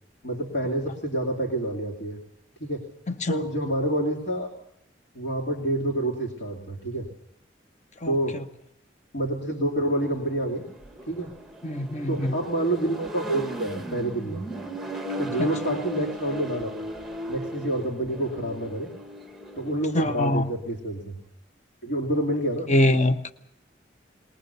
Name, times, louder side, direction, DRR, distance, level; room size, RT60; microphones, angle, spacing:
voice 1, 0.2-2.2 2.6-2.8 3.3-4.5 5.1-7.1 8.0-8.4 9.1-10.7 11.1-11.3 12.1-14.5 15.2-16.7 17.3-18.9 19.6-21.2 21.8-22.7, right 1 dB, 70° left, 0 dB, 2.8 m, -28 dB
voice 2, 8.0-8.4 11.6-12.3 15.4-15.5 19.9-20.5 22.7-23.3, left 1 dB, 40° left, 9 dB, 1.0 m, -24 dB
Accelerating revving vroom, 9.9-20.3, right 1 dB, ahead, 1.1 m, -37 dB
20.5 x 20.5 x 6.8 m, 0.75 s
head